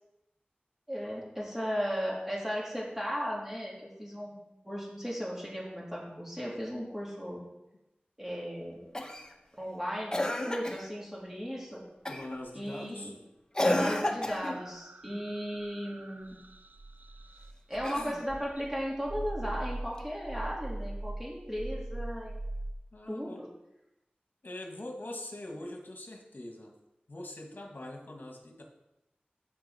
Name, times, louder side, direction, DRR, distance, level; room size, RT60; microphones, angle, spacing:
voice 1, 0.9-7.4 8.2-8.8 9.6-10.2 10.4-11.8 12.5-13.2 13.6-16.4 17.7-22.4 23.1-23.5, equal, 10° right, -5 dB, 3.6 m, -36 dB
Cough, 8.9-9.3 10.1-10.9 12.1-12.4 13.5-14.6 17.7-18.5 20.0-20.1, left 1 dB, 20° left, 1.3 m, -31 dB
voice 2, 12.1-13.1 22.9-23.5 24.4-26.7 27.1-28.6, left 1 dB, 65° left, 1 dB, 1.9 m, -43 dB
sound 1, 14.3-18.2 18.6-22.7, right 1 dB, 55° right, 0.6 m, -41 dB
15.0 x 5.4 x 4.4 m, 0.93 s
wide cardioid pair, 50°, 3 cm